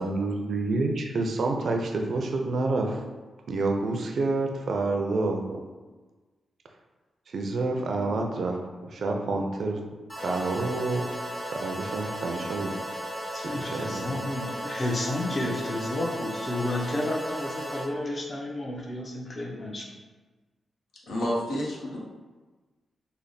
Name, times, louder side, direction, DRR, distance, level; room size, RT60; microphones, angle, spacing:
voice 1, 0.0-3.0 3.5-5.6 7.3-8.6 8.8-9.8 10.2-11.0 11.6-12.7 13.4-14.1, right 3 dB, 60° right, 3 dB, 0.4 m, -28 dB
sound 1, 10.1-17.9, equal, 10° left, 0.9 m, -35 dB
voice 2, 13.3-19.9, left 1 dB, 30° left, 0 dB, 0.6 m, -31 dB
voice 3, 21.1-22.0, equal, 80° left, -4 dB, 0.9 m, -29 dB
3.3 x 2.1 x 3.9 m, 1.3 s
wide cardioid pair, 135°, 0 cm